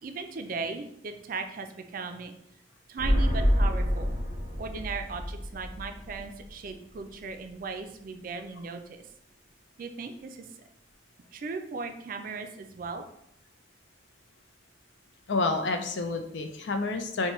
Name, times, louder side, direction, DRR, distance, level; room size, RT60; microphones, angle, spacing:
voice 1, 0.0-2.3 2.9-4.1 4.6-9.0 9.8-10.7 11.3-13.1, right 4 dB, 50° right, 6 dB, 0.4 m, -37 dB
sound 1, 3.0-6.7 7.0-7.1, equal, 40° left, 1.1 m, -27 dB
voice 2, 15.3-17.3, left 3 dB, 80° left, 6 dB, 0.5 m, -29 dB
4.5 x 2.2 x 3.0 m, 0.73 s
head